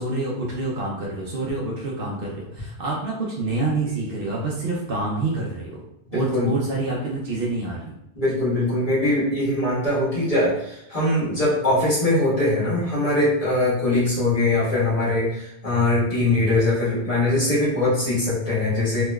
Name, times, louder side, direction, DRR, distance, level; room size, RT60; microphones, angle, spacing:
voice 1, 0.0-5.8 6.1-7.8, right 2 dB, 60° right, -3 dB, 0.8 m, -27 dB
voice 2, 6.1-6.5 8.1-19.0, left 2 dB, 35° left, -9 dB, 1.5 m, -22 dB
3.3 x 2.9 x 2.2 m, 0.83 s
omnidirectional pair, 1.1 m